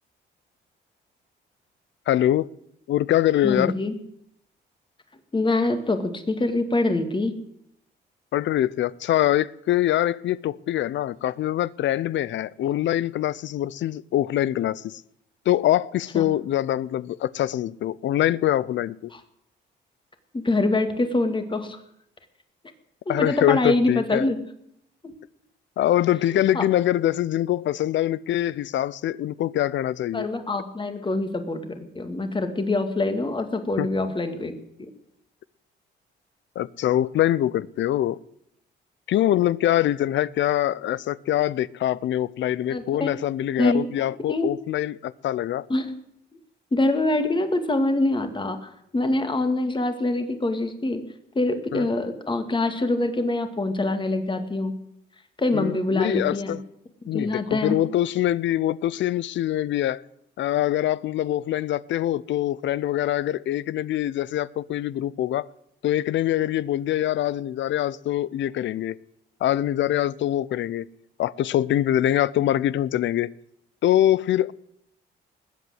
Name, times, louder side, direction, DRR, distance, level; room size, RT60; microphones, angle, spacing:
voice 1, 2.1-2.5 2.9-3.7 8.3-15.0 15.5-19.0 23.1-24.3 25.8-30.3 33.8-33.9 36.6-38.2 39.1-45.7 51.7-51.9 55.5-56.6 57.1-60.0 60.4-65.5 65.8-69.0 69.4-70.9 71.2-73.3 73.8-74.5, left 12 dB, 70° left, 0.6 m, -24 dB
voice 2, 3.4-3.9 5.3-7.3 16.1-16.2 19.1-19.2 20.3-21.8 23.1-24.4 25.0-25.1 26.5-26.6 30.1-34.5 42.7-43.1 43.6-43.9 44.3-44.5 45.7-45.9 46.7-51.0 51.3-54.7 55.4-56.6 57.1-57.8, left 2 dB, 25° left, 2.3 m, -24 dB
20.0 x 8.3 x 8.0 m
cardioid pair, 90°, 20 cm